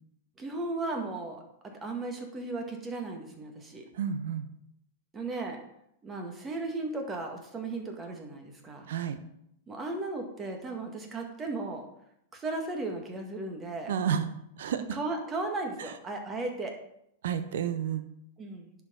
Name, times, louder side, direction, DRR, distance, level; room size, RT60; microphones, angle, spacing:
voice 1, 0.4-3.9 5.1-5.6 6.0-8.9 9.7-11.8 12.3-13.9 14.9-16.7 18.4-18.7, right 2 dB, 20° right, 3 dB, 1.8 m, -36 dB
voice 2, 3.9-4.5 8.9-9.2 13.9-14.3 14.6-15.0 15.8-16.0 17.2-18.1, right 8 dB, 65° right, 11 dB, 0.8 m, -31 dB
10.5 x 5.1 x 3.9 m, 0.77 s
hypercardioid pair, 105°, 0 cm